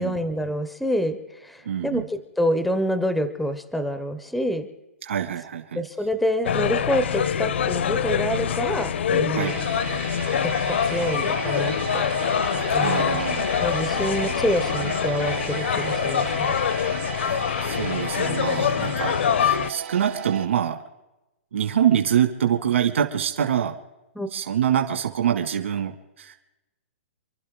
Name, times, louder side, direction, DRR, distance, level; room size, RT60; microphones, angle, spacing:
voice 1, 0.0-4.7 5.7-9.6 10.4-12.0 12.7-13.2 13.6-16.5 24.2-24.3, equal, ahead, 10 dB, 0.5 m, -27 dB
voice 2, 1.7-2.0 5.0-5.8 9.3-9.5 12.8-13.4 14.0-14.1 17.2-20.8 21.5-23.8 24.3-26.3, right 9 dB, 65° right, 4 dB, 1.8 m, -25 dB
sound 1, 6.4-19.7, left 8 dB, 60° left, 0.7 m, -25 dB
sound 2, 9.4-20.5, right 8 dB, 90° right, 4.2 m, -35 dB
28.5 x 12.0 x 3.6 m, 0.99 s
hypercardioid pair, 180°, 7 cm